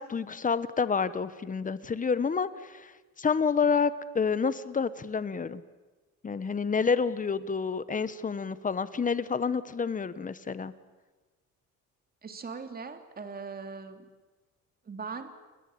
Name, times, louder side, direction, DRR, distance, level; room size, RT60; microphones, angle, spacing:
voice 1, 0.0-2.9 3.2-5.6 6.2-10.7, left 5 dB, 25° left, 14 dB, 1.3 m, -29 dB
voice 2, 12.2-14.0 14.8-15.3, right 5 dB, 30° right, 7 dB, 2.9 m, -40 dB
30.0 x 21.0 x 8.9 m, 1.2 s
cardioid pair, 125°, 30 cm